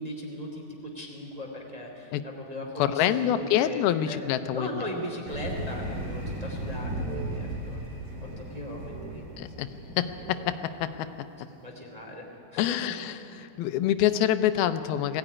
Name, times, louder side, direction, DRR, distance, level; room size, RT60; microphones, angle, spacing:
voice 1, 0.0-4.2 4.5-7.8 8.2-9.7 11.5-12.2 12.5-12.9, equal, 10° right, -1 dB, 2.4 m, -38 dB
voice 2, 2.8-4.8 9.4-11.1 12.6-15.2, left 11 dB, 85° left, 11 dB, 2.6 m, -26 dB
sound 1, 4.5-5.3 5.5-6.5 6.9-9.7 10.0-11.0, right 9 dB, 75° right, 1.7 m, -48 dB
sound 2, 5.3-10.6, right 1 dB, 25° right, 3.4 m, -36 dB
21.5 x 15.5 x 9.8 m, 2.8 s
omnidirectional pair, 4.3 m